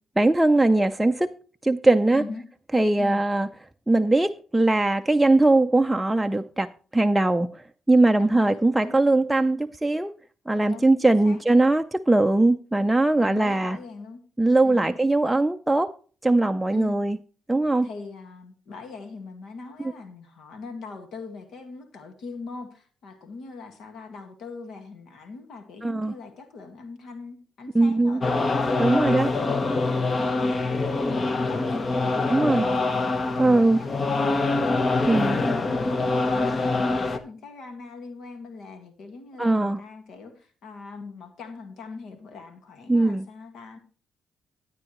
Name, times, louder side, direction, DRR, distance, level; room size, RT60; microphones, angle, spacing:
voice 1, 0.2-1.3 1.6-2.2 2.7-3.5 3.9-7.6 7.9-10.1 10.5-13.8 14.4-15.9 16.2-17.2 17.5-17.9 25.8-26.1 27.7-28.2 28.8-29.3 32.3-32.6 33.4-33.8 35.1-35.4 39.4-39.8 42.9-43.3, right 2 dB, 5° right, 0.5 m, -20 dB
voice 2, 2.1-2.4 2.9-3.2 8.2-8.9 10.7-11.4 13.2-14.2 14.6-14.9 16.7-17.0 17.8-29.8 30.2-33.0 33.3-34.3 34.8-43.8, left 4 dB, 70° left, 1.8 m, -41 dB
sound 1, 28.2-37.2, left 3 dB, 35° left, 1.0 m, -24 dB
12.5 x 9.5 x 3.1 m
cardioid pair, 90°, 0 cm